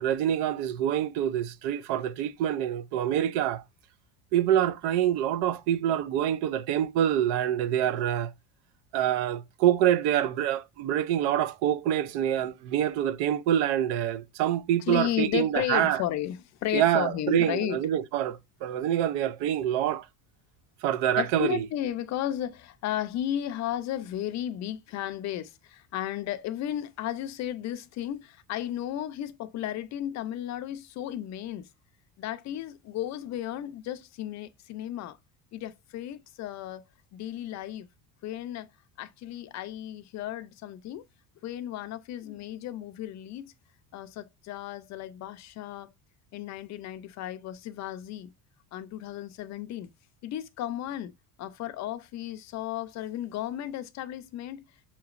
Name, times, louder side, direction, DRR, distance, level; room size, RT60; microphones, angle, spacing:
voice 1, 0.0-3.6 4.3-8.3 8.9-16.0 16.7-20.1 20.8-21.7, right 11 dB, 75° right, 0.5 m, -26 dB
voice 2, 14.9-17.8 21.2-31.7 32.2-35.2 35.5-36.8 37.1-37.9 38.2-38.7 39.0-41.0 41.4-43.5 43.9-45.9 46.3-48.3 48.7-49.9 50.2-51.1 51.4-54.7, left 12 dB, 45° left, 0.4 m, -34 dB
5.8 x 2.9 x 2.4 m
cardioid pair, 150°, 41 cm